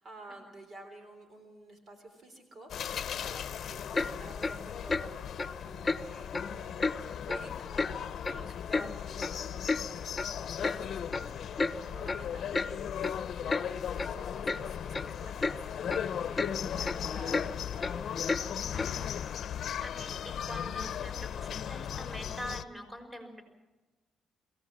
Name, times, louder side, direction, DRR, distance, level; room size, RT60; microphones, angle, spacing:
voice 1, 0.0-16.5 16.7-18.5, right 1 dB, 55° right, 6 dB, 3.7 m, -51 dB
sound 1, 2.7-22.6, left 9 dB, 65° left, 0.8 m, -37 dB
Clock, 3.9-4.1 4.4-4.6 4.9-5.1 5.4-5.5 5.8-6.0 6.3-6.5 6.8-6.9 7.3-7.4 7.8-7.9 8.2-8.9 9.2-9.3 9.7-9.8 10.2-10.3 10.6-10.8 11.1-11.3 11.6-11.7 12.1-12.2 12.5-12.7 13.0-13.1 13.5-13.6 14.0-14.1 14.5-14.6 14.9-15.1 15.4-15.6 15.9-16.0 16.4-16.5 16.8-17.0 17.3-17.5 17.8-17.9 18.3-18.4 18.8-18.9, left 3 dB, 25° left, 0.9 m, -31 dB
voice 2, 19.8-23.4, equal, 15° right, 4 dB, 5.6 m, -44 dB
22.5 x 17.5 x 7.5 m, 1.2 s
cardioid pair, 90°, 0 cm